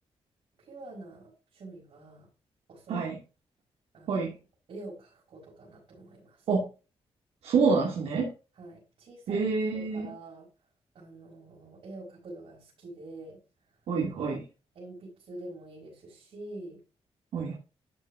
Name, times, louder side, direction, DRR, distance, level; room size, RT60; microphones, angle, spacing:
voice 1, 0.7-2.3 2.7-3.0 3.9-4.3 4.7-6.4 8.6-9.5 9.7-10.5 10.9-13.4 14.7-16.8 17.4-17.5, right 2 dB, 65° right, -6 dB, 5.7 m, -46 dB
voice 2, 7.4-8.3 9.3-10.1 13.9-14.4 17.3-17.6, right 4 dB, 85° right, -3 dB, 2.9 m, -27 dB
13.0 x 6.5 x 2.9 m, 0.32 s
wide cardioid pair, 125°, 10 cm